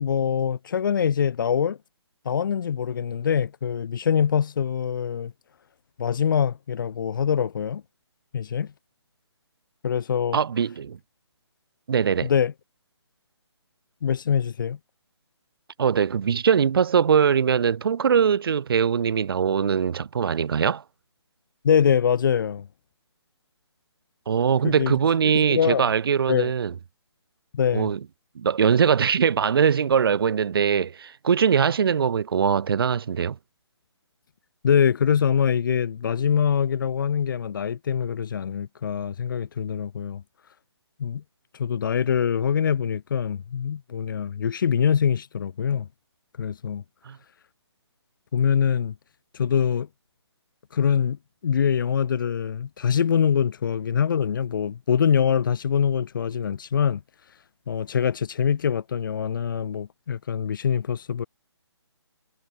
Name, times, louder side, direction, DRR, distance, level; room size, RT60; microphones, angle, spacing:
voice 1, 0.0-1.8 2.2-5.3 6.0-7.8 8.3-8.7 9.8-10.4 12.2-12.5 14.0-14.8 21.6-22.7 24.6-25.0 25.3-25.9 26.3-26.5 27.5-27.9 34.6-40.2 41.0-41.2 41.5-45.9 46.4-46.8 48.3-48.9 49.3-49.9 50.7-57.0 57.7-61.2, left 7 dB, 45° left, 1.5 m, -24 dB
voice 2, 10.3-11.0 11.9-12.3 15.8-20.8 24.3-26.7 27.7-28.0 28.4-33.4 47.1-47.2, right 7 dB, 55° right, 0.5 m, -22 dB
hypercardioid pair, 160°, 15 cm